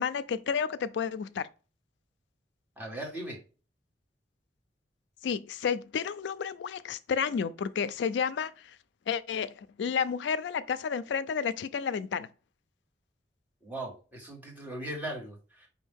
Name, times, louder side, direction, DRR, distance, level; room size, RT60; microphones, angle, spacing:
voice 1, 0.0-1.5 5.2-8.8 9.1-12.3, left 6 dB, 70° left, 0.3 m, -31 dB
voice 2, 2.8-3.4 13.6-15.7, right 1 dB, 10° right, 1.4 m, -39 dB
5.2 x 2.7 x 3.5 m
head